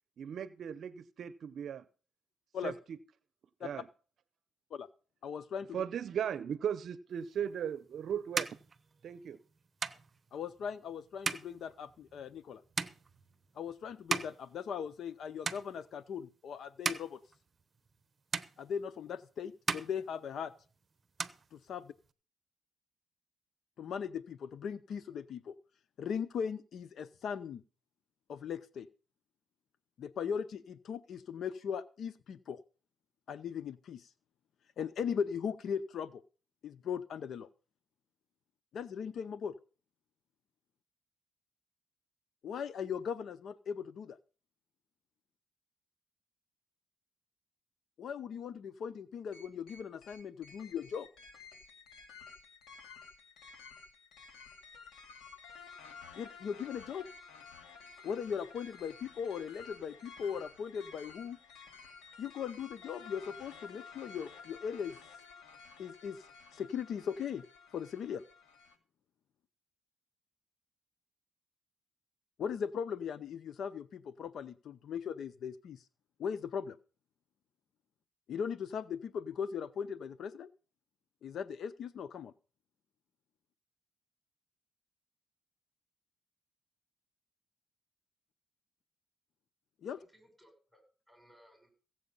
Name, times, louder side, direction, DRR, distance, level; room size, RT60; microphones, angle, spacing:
voice 1, 0.2-1.8 2.6-3.0 3.6-3.8 5.7-8.5 9.0-9.4, right 8 dB, 60° right, 14 dB, 0.6 m, -37 dB
voice 2, 5.2-5.8 10.3-12.6 13.6-17.2 18.6-20.5 21.5-21.9 23.8-25.5 26.0-27.6 28.3-28.9 30.0-32.6 33.3-34.1 34.8-36.1 36.6-37.5 38.7-39.6 42.4-44.2 48.0-51.1 56.2-57.1 58.0-61.4 62.2-65.0 65.8-66.2 66.5-67.4 67.7-68.2 72.4-75.8 76.2-76.8 78.3-80.5 81.2-82.3 89.8-90.0, left 7 dB, 65° left, 15 dB, 0.6 m, -39 dB
sound 1, 7.5-15.2 15.4-16.1 16.6-18.0 18.3-19.2 19.5-20.7 21.0-22.1, right 4 dB, 35° right, 0.8 m, -39 dB
sound 2, 49.3-68.7, left 5 dB, 80° left, 2.3 m, -53 dB
voice 3, 89.8-91.7, equal, ahead, 4 dB, 6.7 m, -64 dB
16.0 x 7.7 x 5.4 m, 0.38 s
cardioid pair, 90°, 0 cm